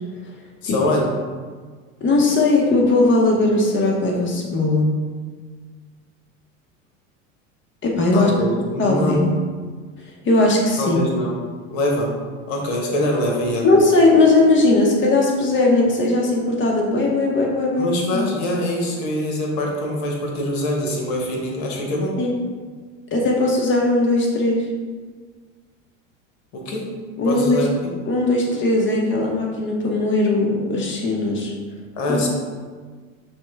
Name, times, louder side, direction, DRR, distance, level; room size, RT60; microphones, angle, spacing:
voice 1, 0.6-1.1 8.1-9.3 10.8-11.4 11.7-12.1 12.5-13.7 17.8-22.2 26.5-26.9 27.2-27.9 31.9-32.3, left 1 dB, 60° left, 0 dB, 1.2 m, -23 dB
voice 2, 2.0-4.9 7.8-8.3 8.8-9.3 10.2-11.0 13.6-17.9 18.1-18.3 22.2-22.4 23.1-24.7 27.2-27.6 28.1-31.5 32.1-32.2, left 2 dB, 30° left, 0 dB, 1.0 m, -18 dB
5.8 x 2.3 x 3.4 m, 1.5 s
hypercardioid pair, 95°, 40 cm